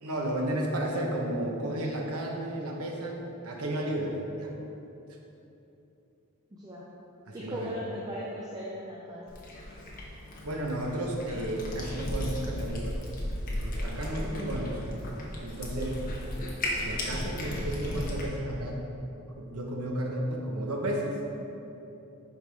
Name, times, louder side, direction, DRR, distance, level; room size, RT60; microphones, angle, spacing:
voice 1, 0.0-4.5 7.3-7.7 10.4-13.0 13.6-14.8 15.4-16.0 16.7-18.8 19.4-21.2, right 1 dB, 85° right, 0 dB, 1.0 m, -33 dB
voice 2, 6.5-6.9 7.3-9.4 14.2-14.5 16.4-16.5, equal, 15° right, -5 dB, 0.6 m, -38 dB
Cat, 9.3-18.3, left 1 dB, 40° left, 1.2 m, -35 dB
10.0 x 4.7 x 3.5 m, 2.9 s
head